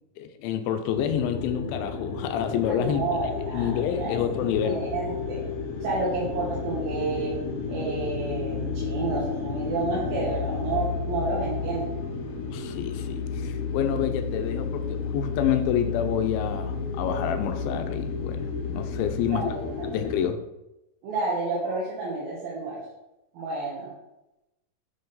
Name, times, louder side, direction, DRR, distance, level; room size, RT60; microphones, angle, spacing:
voice 1, 0.2-3.0 3.5-4.8 12.5-19.5 19.8-20.4, left 9 dB, 90° left, 8 dB, 2.4 m, -28 dB
sound 1, 1.0-20.3, left 4 dB, 70° left, 2.3 m, -32 dB
voice 2, 2.7-4.2 4.6-5.4 5.8-7.3 7.7-11.9 19.2-19.9 21.0-22.8 23.3-23.9, right 3 dB, 80° right, -6 dB, 3.1 m, -30 dB
7.2 x 5.6 x 3.9 m, 0.92 s
omnidirectional pair, 4.1 m